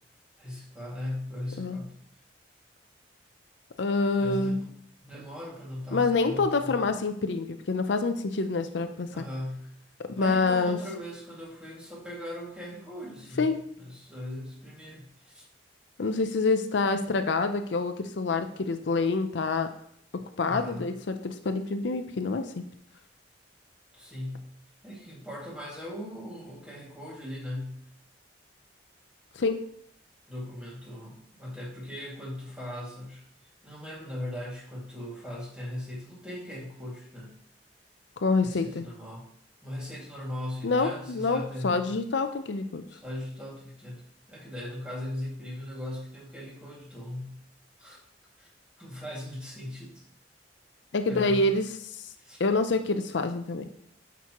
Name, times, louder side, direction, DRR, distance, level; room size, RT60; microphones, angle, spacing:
voice 1, 0.4-2.0 4.2-4.7 5.0-6.8 9.1-9.7 10.2-15.5 20.4-20.9 23.9-24.5 24.8-27.8 30.3-33.3 33.6-37.4 38.4-39.3 39.6-42.0 42.9-44.0 44.3-47.4 47.8-48.0 48.4-48.5 48.8-50.0 51.1-51.5 52.2-52.4, left 1 dB, 5° right, -5 dB, 2.2 m, -39 dB
voice 2, 3.8-4.6 5.9-9.2 10.0-10.8 13.4-13.6 16.0-19.7 20.1-22.6 29.4-29.6 38.2-38.8 40.6-42.8 50.9-52.0 52.4-53.7, left 3 dB, 75° left, 8 dB, 0.6 m, -27 dB
9.4 x 6.0 x 3.0 m, 0.65 s
head